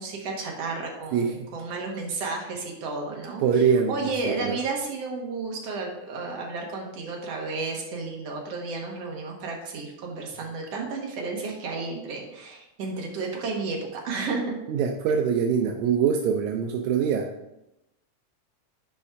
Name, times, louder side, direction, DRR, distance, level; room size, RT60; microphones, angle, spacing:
voice 1, 0.0-14.6 15.1-15.2, right 3 dB, 60° right, 0 dB, 2.4 m, -32 dB
voice 2, 3.4-3.9 4.3-4.6 14.7-17.3, right 7 dB, 85° right, 3 dB, 2.1 m, -23 dB
10.0 x 5.3 x 3.6 m, 0.89 s
omnidirectional pair, 3.3 m